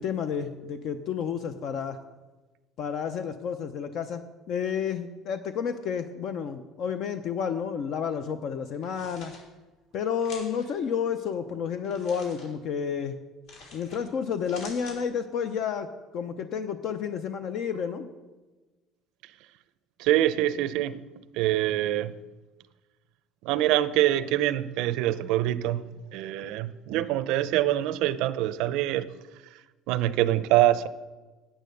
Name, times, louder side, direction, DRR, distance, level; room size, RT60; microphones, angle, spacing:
voice 1, 0.0-2.0 2.8-4.2 4.5-9.3 9.9-13.1 13.7-15.9 16.1-18.1, left 7 dB, 55° left, 0.6 m, -30 dB
sound 1, 8.7-9.4 10.2-10.7 11.8-12.5 13.5-14.0 14.3-15.0, left 3 dB, 70° left, 4.4 m, -46 dB
voice 2, 20.0-21.0 21.3-22.1 23.4-25.8 26.1-29.1 29.9-30.9, right 13 dB, 75° right, 0.5 m, -25 dB
9.2 x 8.8 x 6.5 m
cardioid pair, 140°, 0 cm